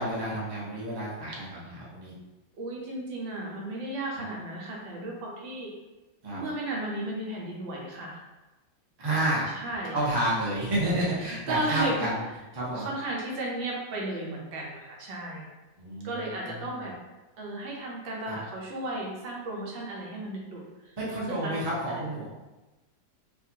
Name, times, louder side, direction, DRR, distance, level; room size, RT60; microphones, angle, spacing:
voice 1, 0.0-2.1 6.2-6.4 9.0-9.5 9.9-12.2 12.5-12.9 15.8-16.9 18.2-18.4 21.0-22.3, right 1 dB, 25° right, -7 dB, 0.5 m, -30 dB
voice 2, 2.6-5.7 6.3-8.2 9.5-10.0 11.5-12.0 12.7-15.5 16.0-17.0 17.4-21.0 21.3-21.5 21.9-22.1, right 2 dB, 75° right, -2 dB, 1.5 m, -34 dB
4.6 x 2.5 x 2.8 m, 1.1 s
omnidirectional pair, 2.1 m